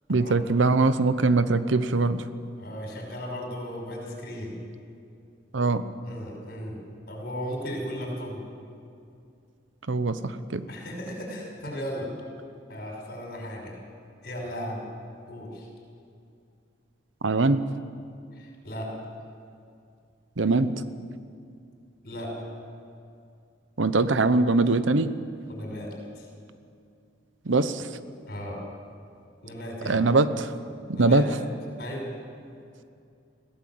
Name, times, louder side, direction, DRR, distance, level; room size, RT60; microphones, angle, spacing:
voice 1, 0.1-2.3 5.5-5.8 9.9-10.6 17.2-17.6 20.4-20.7 23.8-25.1 27.4-27.9 29.9-30.5 30.9-31.3, right 3 dB, 90° right, 12 dB, 0.9 m, -22 dB
voice 2, 2.6-4.6 6.0-6.8 7.1-8.5 10.7-12.1 12.7-13.8 14.2-14.9 15.3-15.7 18.4-18.9 22.0-22.4 25.5-26.3 28.3-28.6 29.4-30.0 30.9-31.3 31.8-32.1, equal, 55° left, 1 dB, 5.7 m, -36 dB
21.5 x 16.0 x 7.8 m, 2.5 s
head